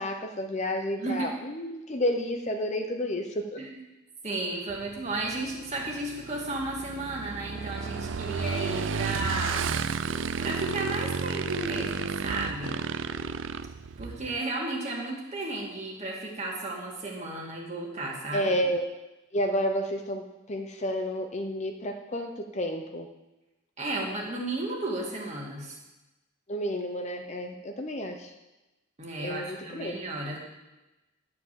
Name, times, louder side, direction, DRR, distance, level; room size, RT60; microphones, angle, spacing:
voice 1, 0.0-3.4 18.3-18.9 19.3-23.1 26.5-28.3 29.2-30.0, equal, 35° left, 4 dB, 0.7 m, -30 dB
voice 2, 4.2-9.7 10.4-12.8 14.0-18.5 23.8-25.8 29.0-30.4, right 2 dB, 35° right, -2 dB, 2.0 m, -33 dB
Motorcycle / Engine, 4.7-14.4, right 5 dB, 60° right, 0.4 m, -33 dB
11.0 x 4.9 x 7.5 m, 1.0 s
head